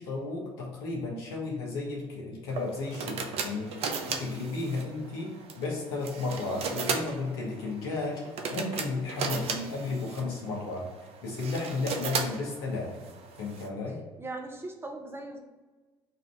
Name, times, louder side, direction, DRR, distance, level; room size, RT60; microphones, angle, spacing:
voice 1, 0.0-10.8 11.2-13.0 13.4-14.0, left 3 dB, 75° left, -3 dB, 1.3 m, -34 dB
sound 1, 2.5-13.7, right 5 dB, 50° right, 0.6 m, -36 dB
voice 2, 14.2-15.4, right 2 dB, 20° right, 2 dB, 0.8 m, -39 dB
4.1 x 2.6 x 4.7 m, 1.3 s
hypercardioid pair, 60°, 13 cm